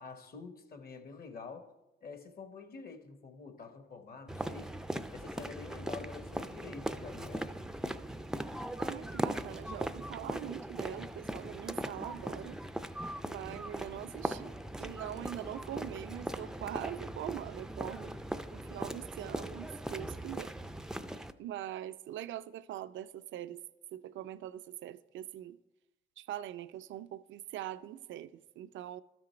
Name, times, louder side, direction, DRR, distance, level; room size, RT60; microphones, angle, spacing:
voice 1, 0.0-1.7 2.0-7.6, left 4 dB, 50° left, 1.1 m, -48 dB
sound 1, 4.3-21.3, right 1 dB, 5° right, 0.4 m, -39 dB
voice 2, 8.8-12.6 13.3-18.1 18.5-20.5 21.4-23.6 23.9-25.6 26.2-29.0, right 12 dB, 70° right, 0.4 m, -43 dB
12.5 x 6.2 x 4.3 m
cardioid pair, 90°, 20 cm